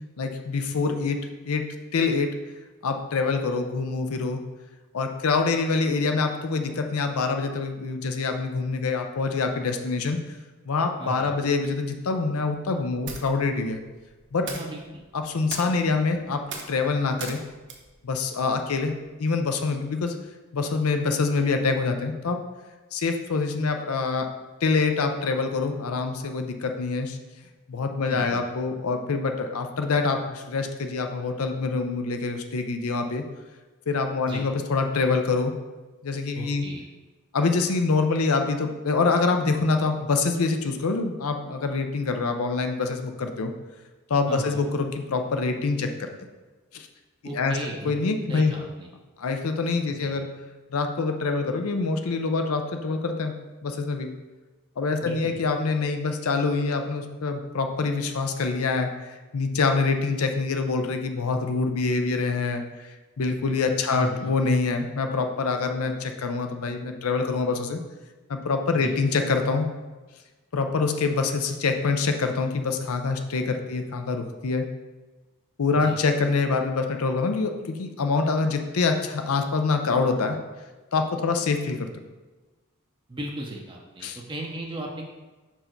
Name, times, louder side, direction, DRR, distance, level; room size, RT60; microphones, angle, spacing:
voice 1, 0.2-1.2 1.4-1.6 1.9-2.3 2.8-4.4 4.9-10.2 10.7-13.8 14.3-14.5 15.1-16.4 16.7-17.4 18.0-18.9 19.2-20.1 20.5-22.4 22.9-24.3 24.6-27.2 27.7-33.2 33.9-35.5 36.0-36.6 37.3-43.5 44.1-46.1 46.7-46.9 47.3-47.6 47.8-48.5 49.2-50.3 50.7-53.3 53.6-54.1 54.8-62.9 63.2-67.8 68.3-69.7 70.5-74.7 75.6-80.4 80.9-81.9 84.0-84.2, left 4 dB, 90° left, 6 dB, 0.6 m, -25 dB
voice 2, 11.0-11.4 14.5-15.0 28.1-28.4 34.2-34.5 36.4-36.8 44.3-44.6 47.2-48.9 49.9-50.1 55.0-55.4 63.9-64.3 68.8-69.0 75.7-76.0 83.1-85.0, right 1 dB, 20° right, -1 dB, 0.6 m, -36 dB
sound 1, 12.9-19.1, right 4 dB, 55° right, 0.8 m, -42 dB
5.3 x 4.6 x 4.4 m, 1.2 s
head